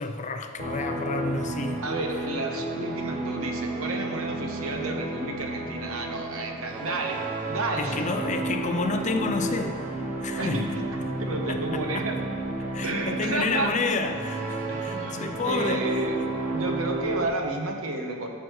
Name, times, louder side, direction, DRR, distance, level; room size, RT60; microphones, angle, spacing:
voice 1, 0.0-1.8 7.8-9.9 10.2-10.6 11.5-12.1 12.7-15.9, left 3 dB, 35° left, 7 dB, 0.5 m, -30 dB
sound 1, 0.6-17.3, right 2 dB, 35° right, 0.9 m, -32 dB
voice 2, 1.8-7.2 7.5-8.0 10.4-12.3 12.8-13.7 14.7-16.2 16.5-18.3, right 2 dB, 70° right, 3 dB, 1.1 m, -31 dB
13.5 x 6.7 x 3.2 m, 2.3 s
head